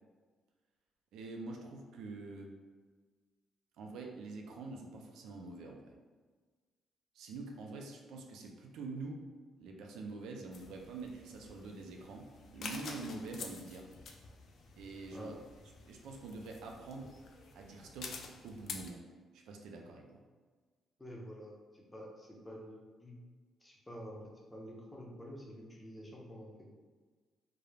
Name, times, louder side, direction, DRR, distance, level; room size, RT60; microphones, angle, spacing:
voice 1, 1.1-2.5 3.8-5.9 7.1-9.2 9.6-13.9 14.8-15.4 15.9-17.1 17.5-18.2 18.4-19.0 19.3-20.2, right 3 dB, 85° right, 1 dB, 0.3 m, -45 dB
sound 1, 10.5-18.9, left 4 dB, 60° left, 0.3 m, -49 dB
voice 2, 21.0-23.1 23.6-24.2 24.5-26.7, equal, 15° left, -2 dB, 0.6 m, -49 dB
2.3 x 2.0 x 3.2 m, 1.4 s
cardioid pair, 90°, 0 cm